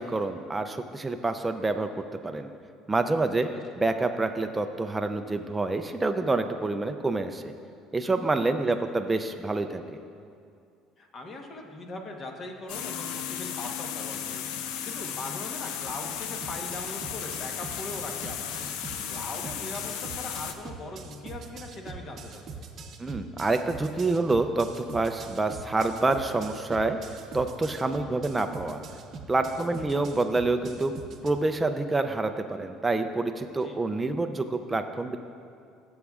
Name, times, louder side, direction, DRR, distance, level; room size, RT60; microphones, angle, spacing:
voice 1, 0.0-2.5 2.9-3.5 3.8-7.5 7.9-10.0 23.0-27.0 27.3-28.8 29.3-30.9 31.2-35.2, right 2 dB, 15° right, 6 dB, 0.3 m, -27 dB
voice 2, 8.6-8.9 11.0-14.4 14.9-18.5 19.1-22.7 29.5-29.7 33.6-33.8, left 2 dB, 35° left, 3 dB, 1.0 m, -40 dB
sound 1, 12.7-20.5, left 9 dB, 80° left, 0.5 m, -35 dB
Mallet percussion, 12.7-17.5, left 8 dB, 55° left, 1.3 m, -46 dB
sound 2, 15.8-31.3, right 5 dB, 45° right, 0.7 m, -42 dB
16.0 x 7.1 x 2.4 m, 2.4 s
cardioid pair, 130°, 0 cm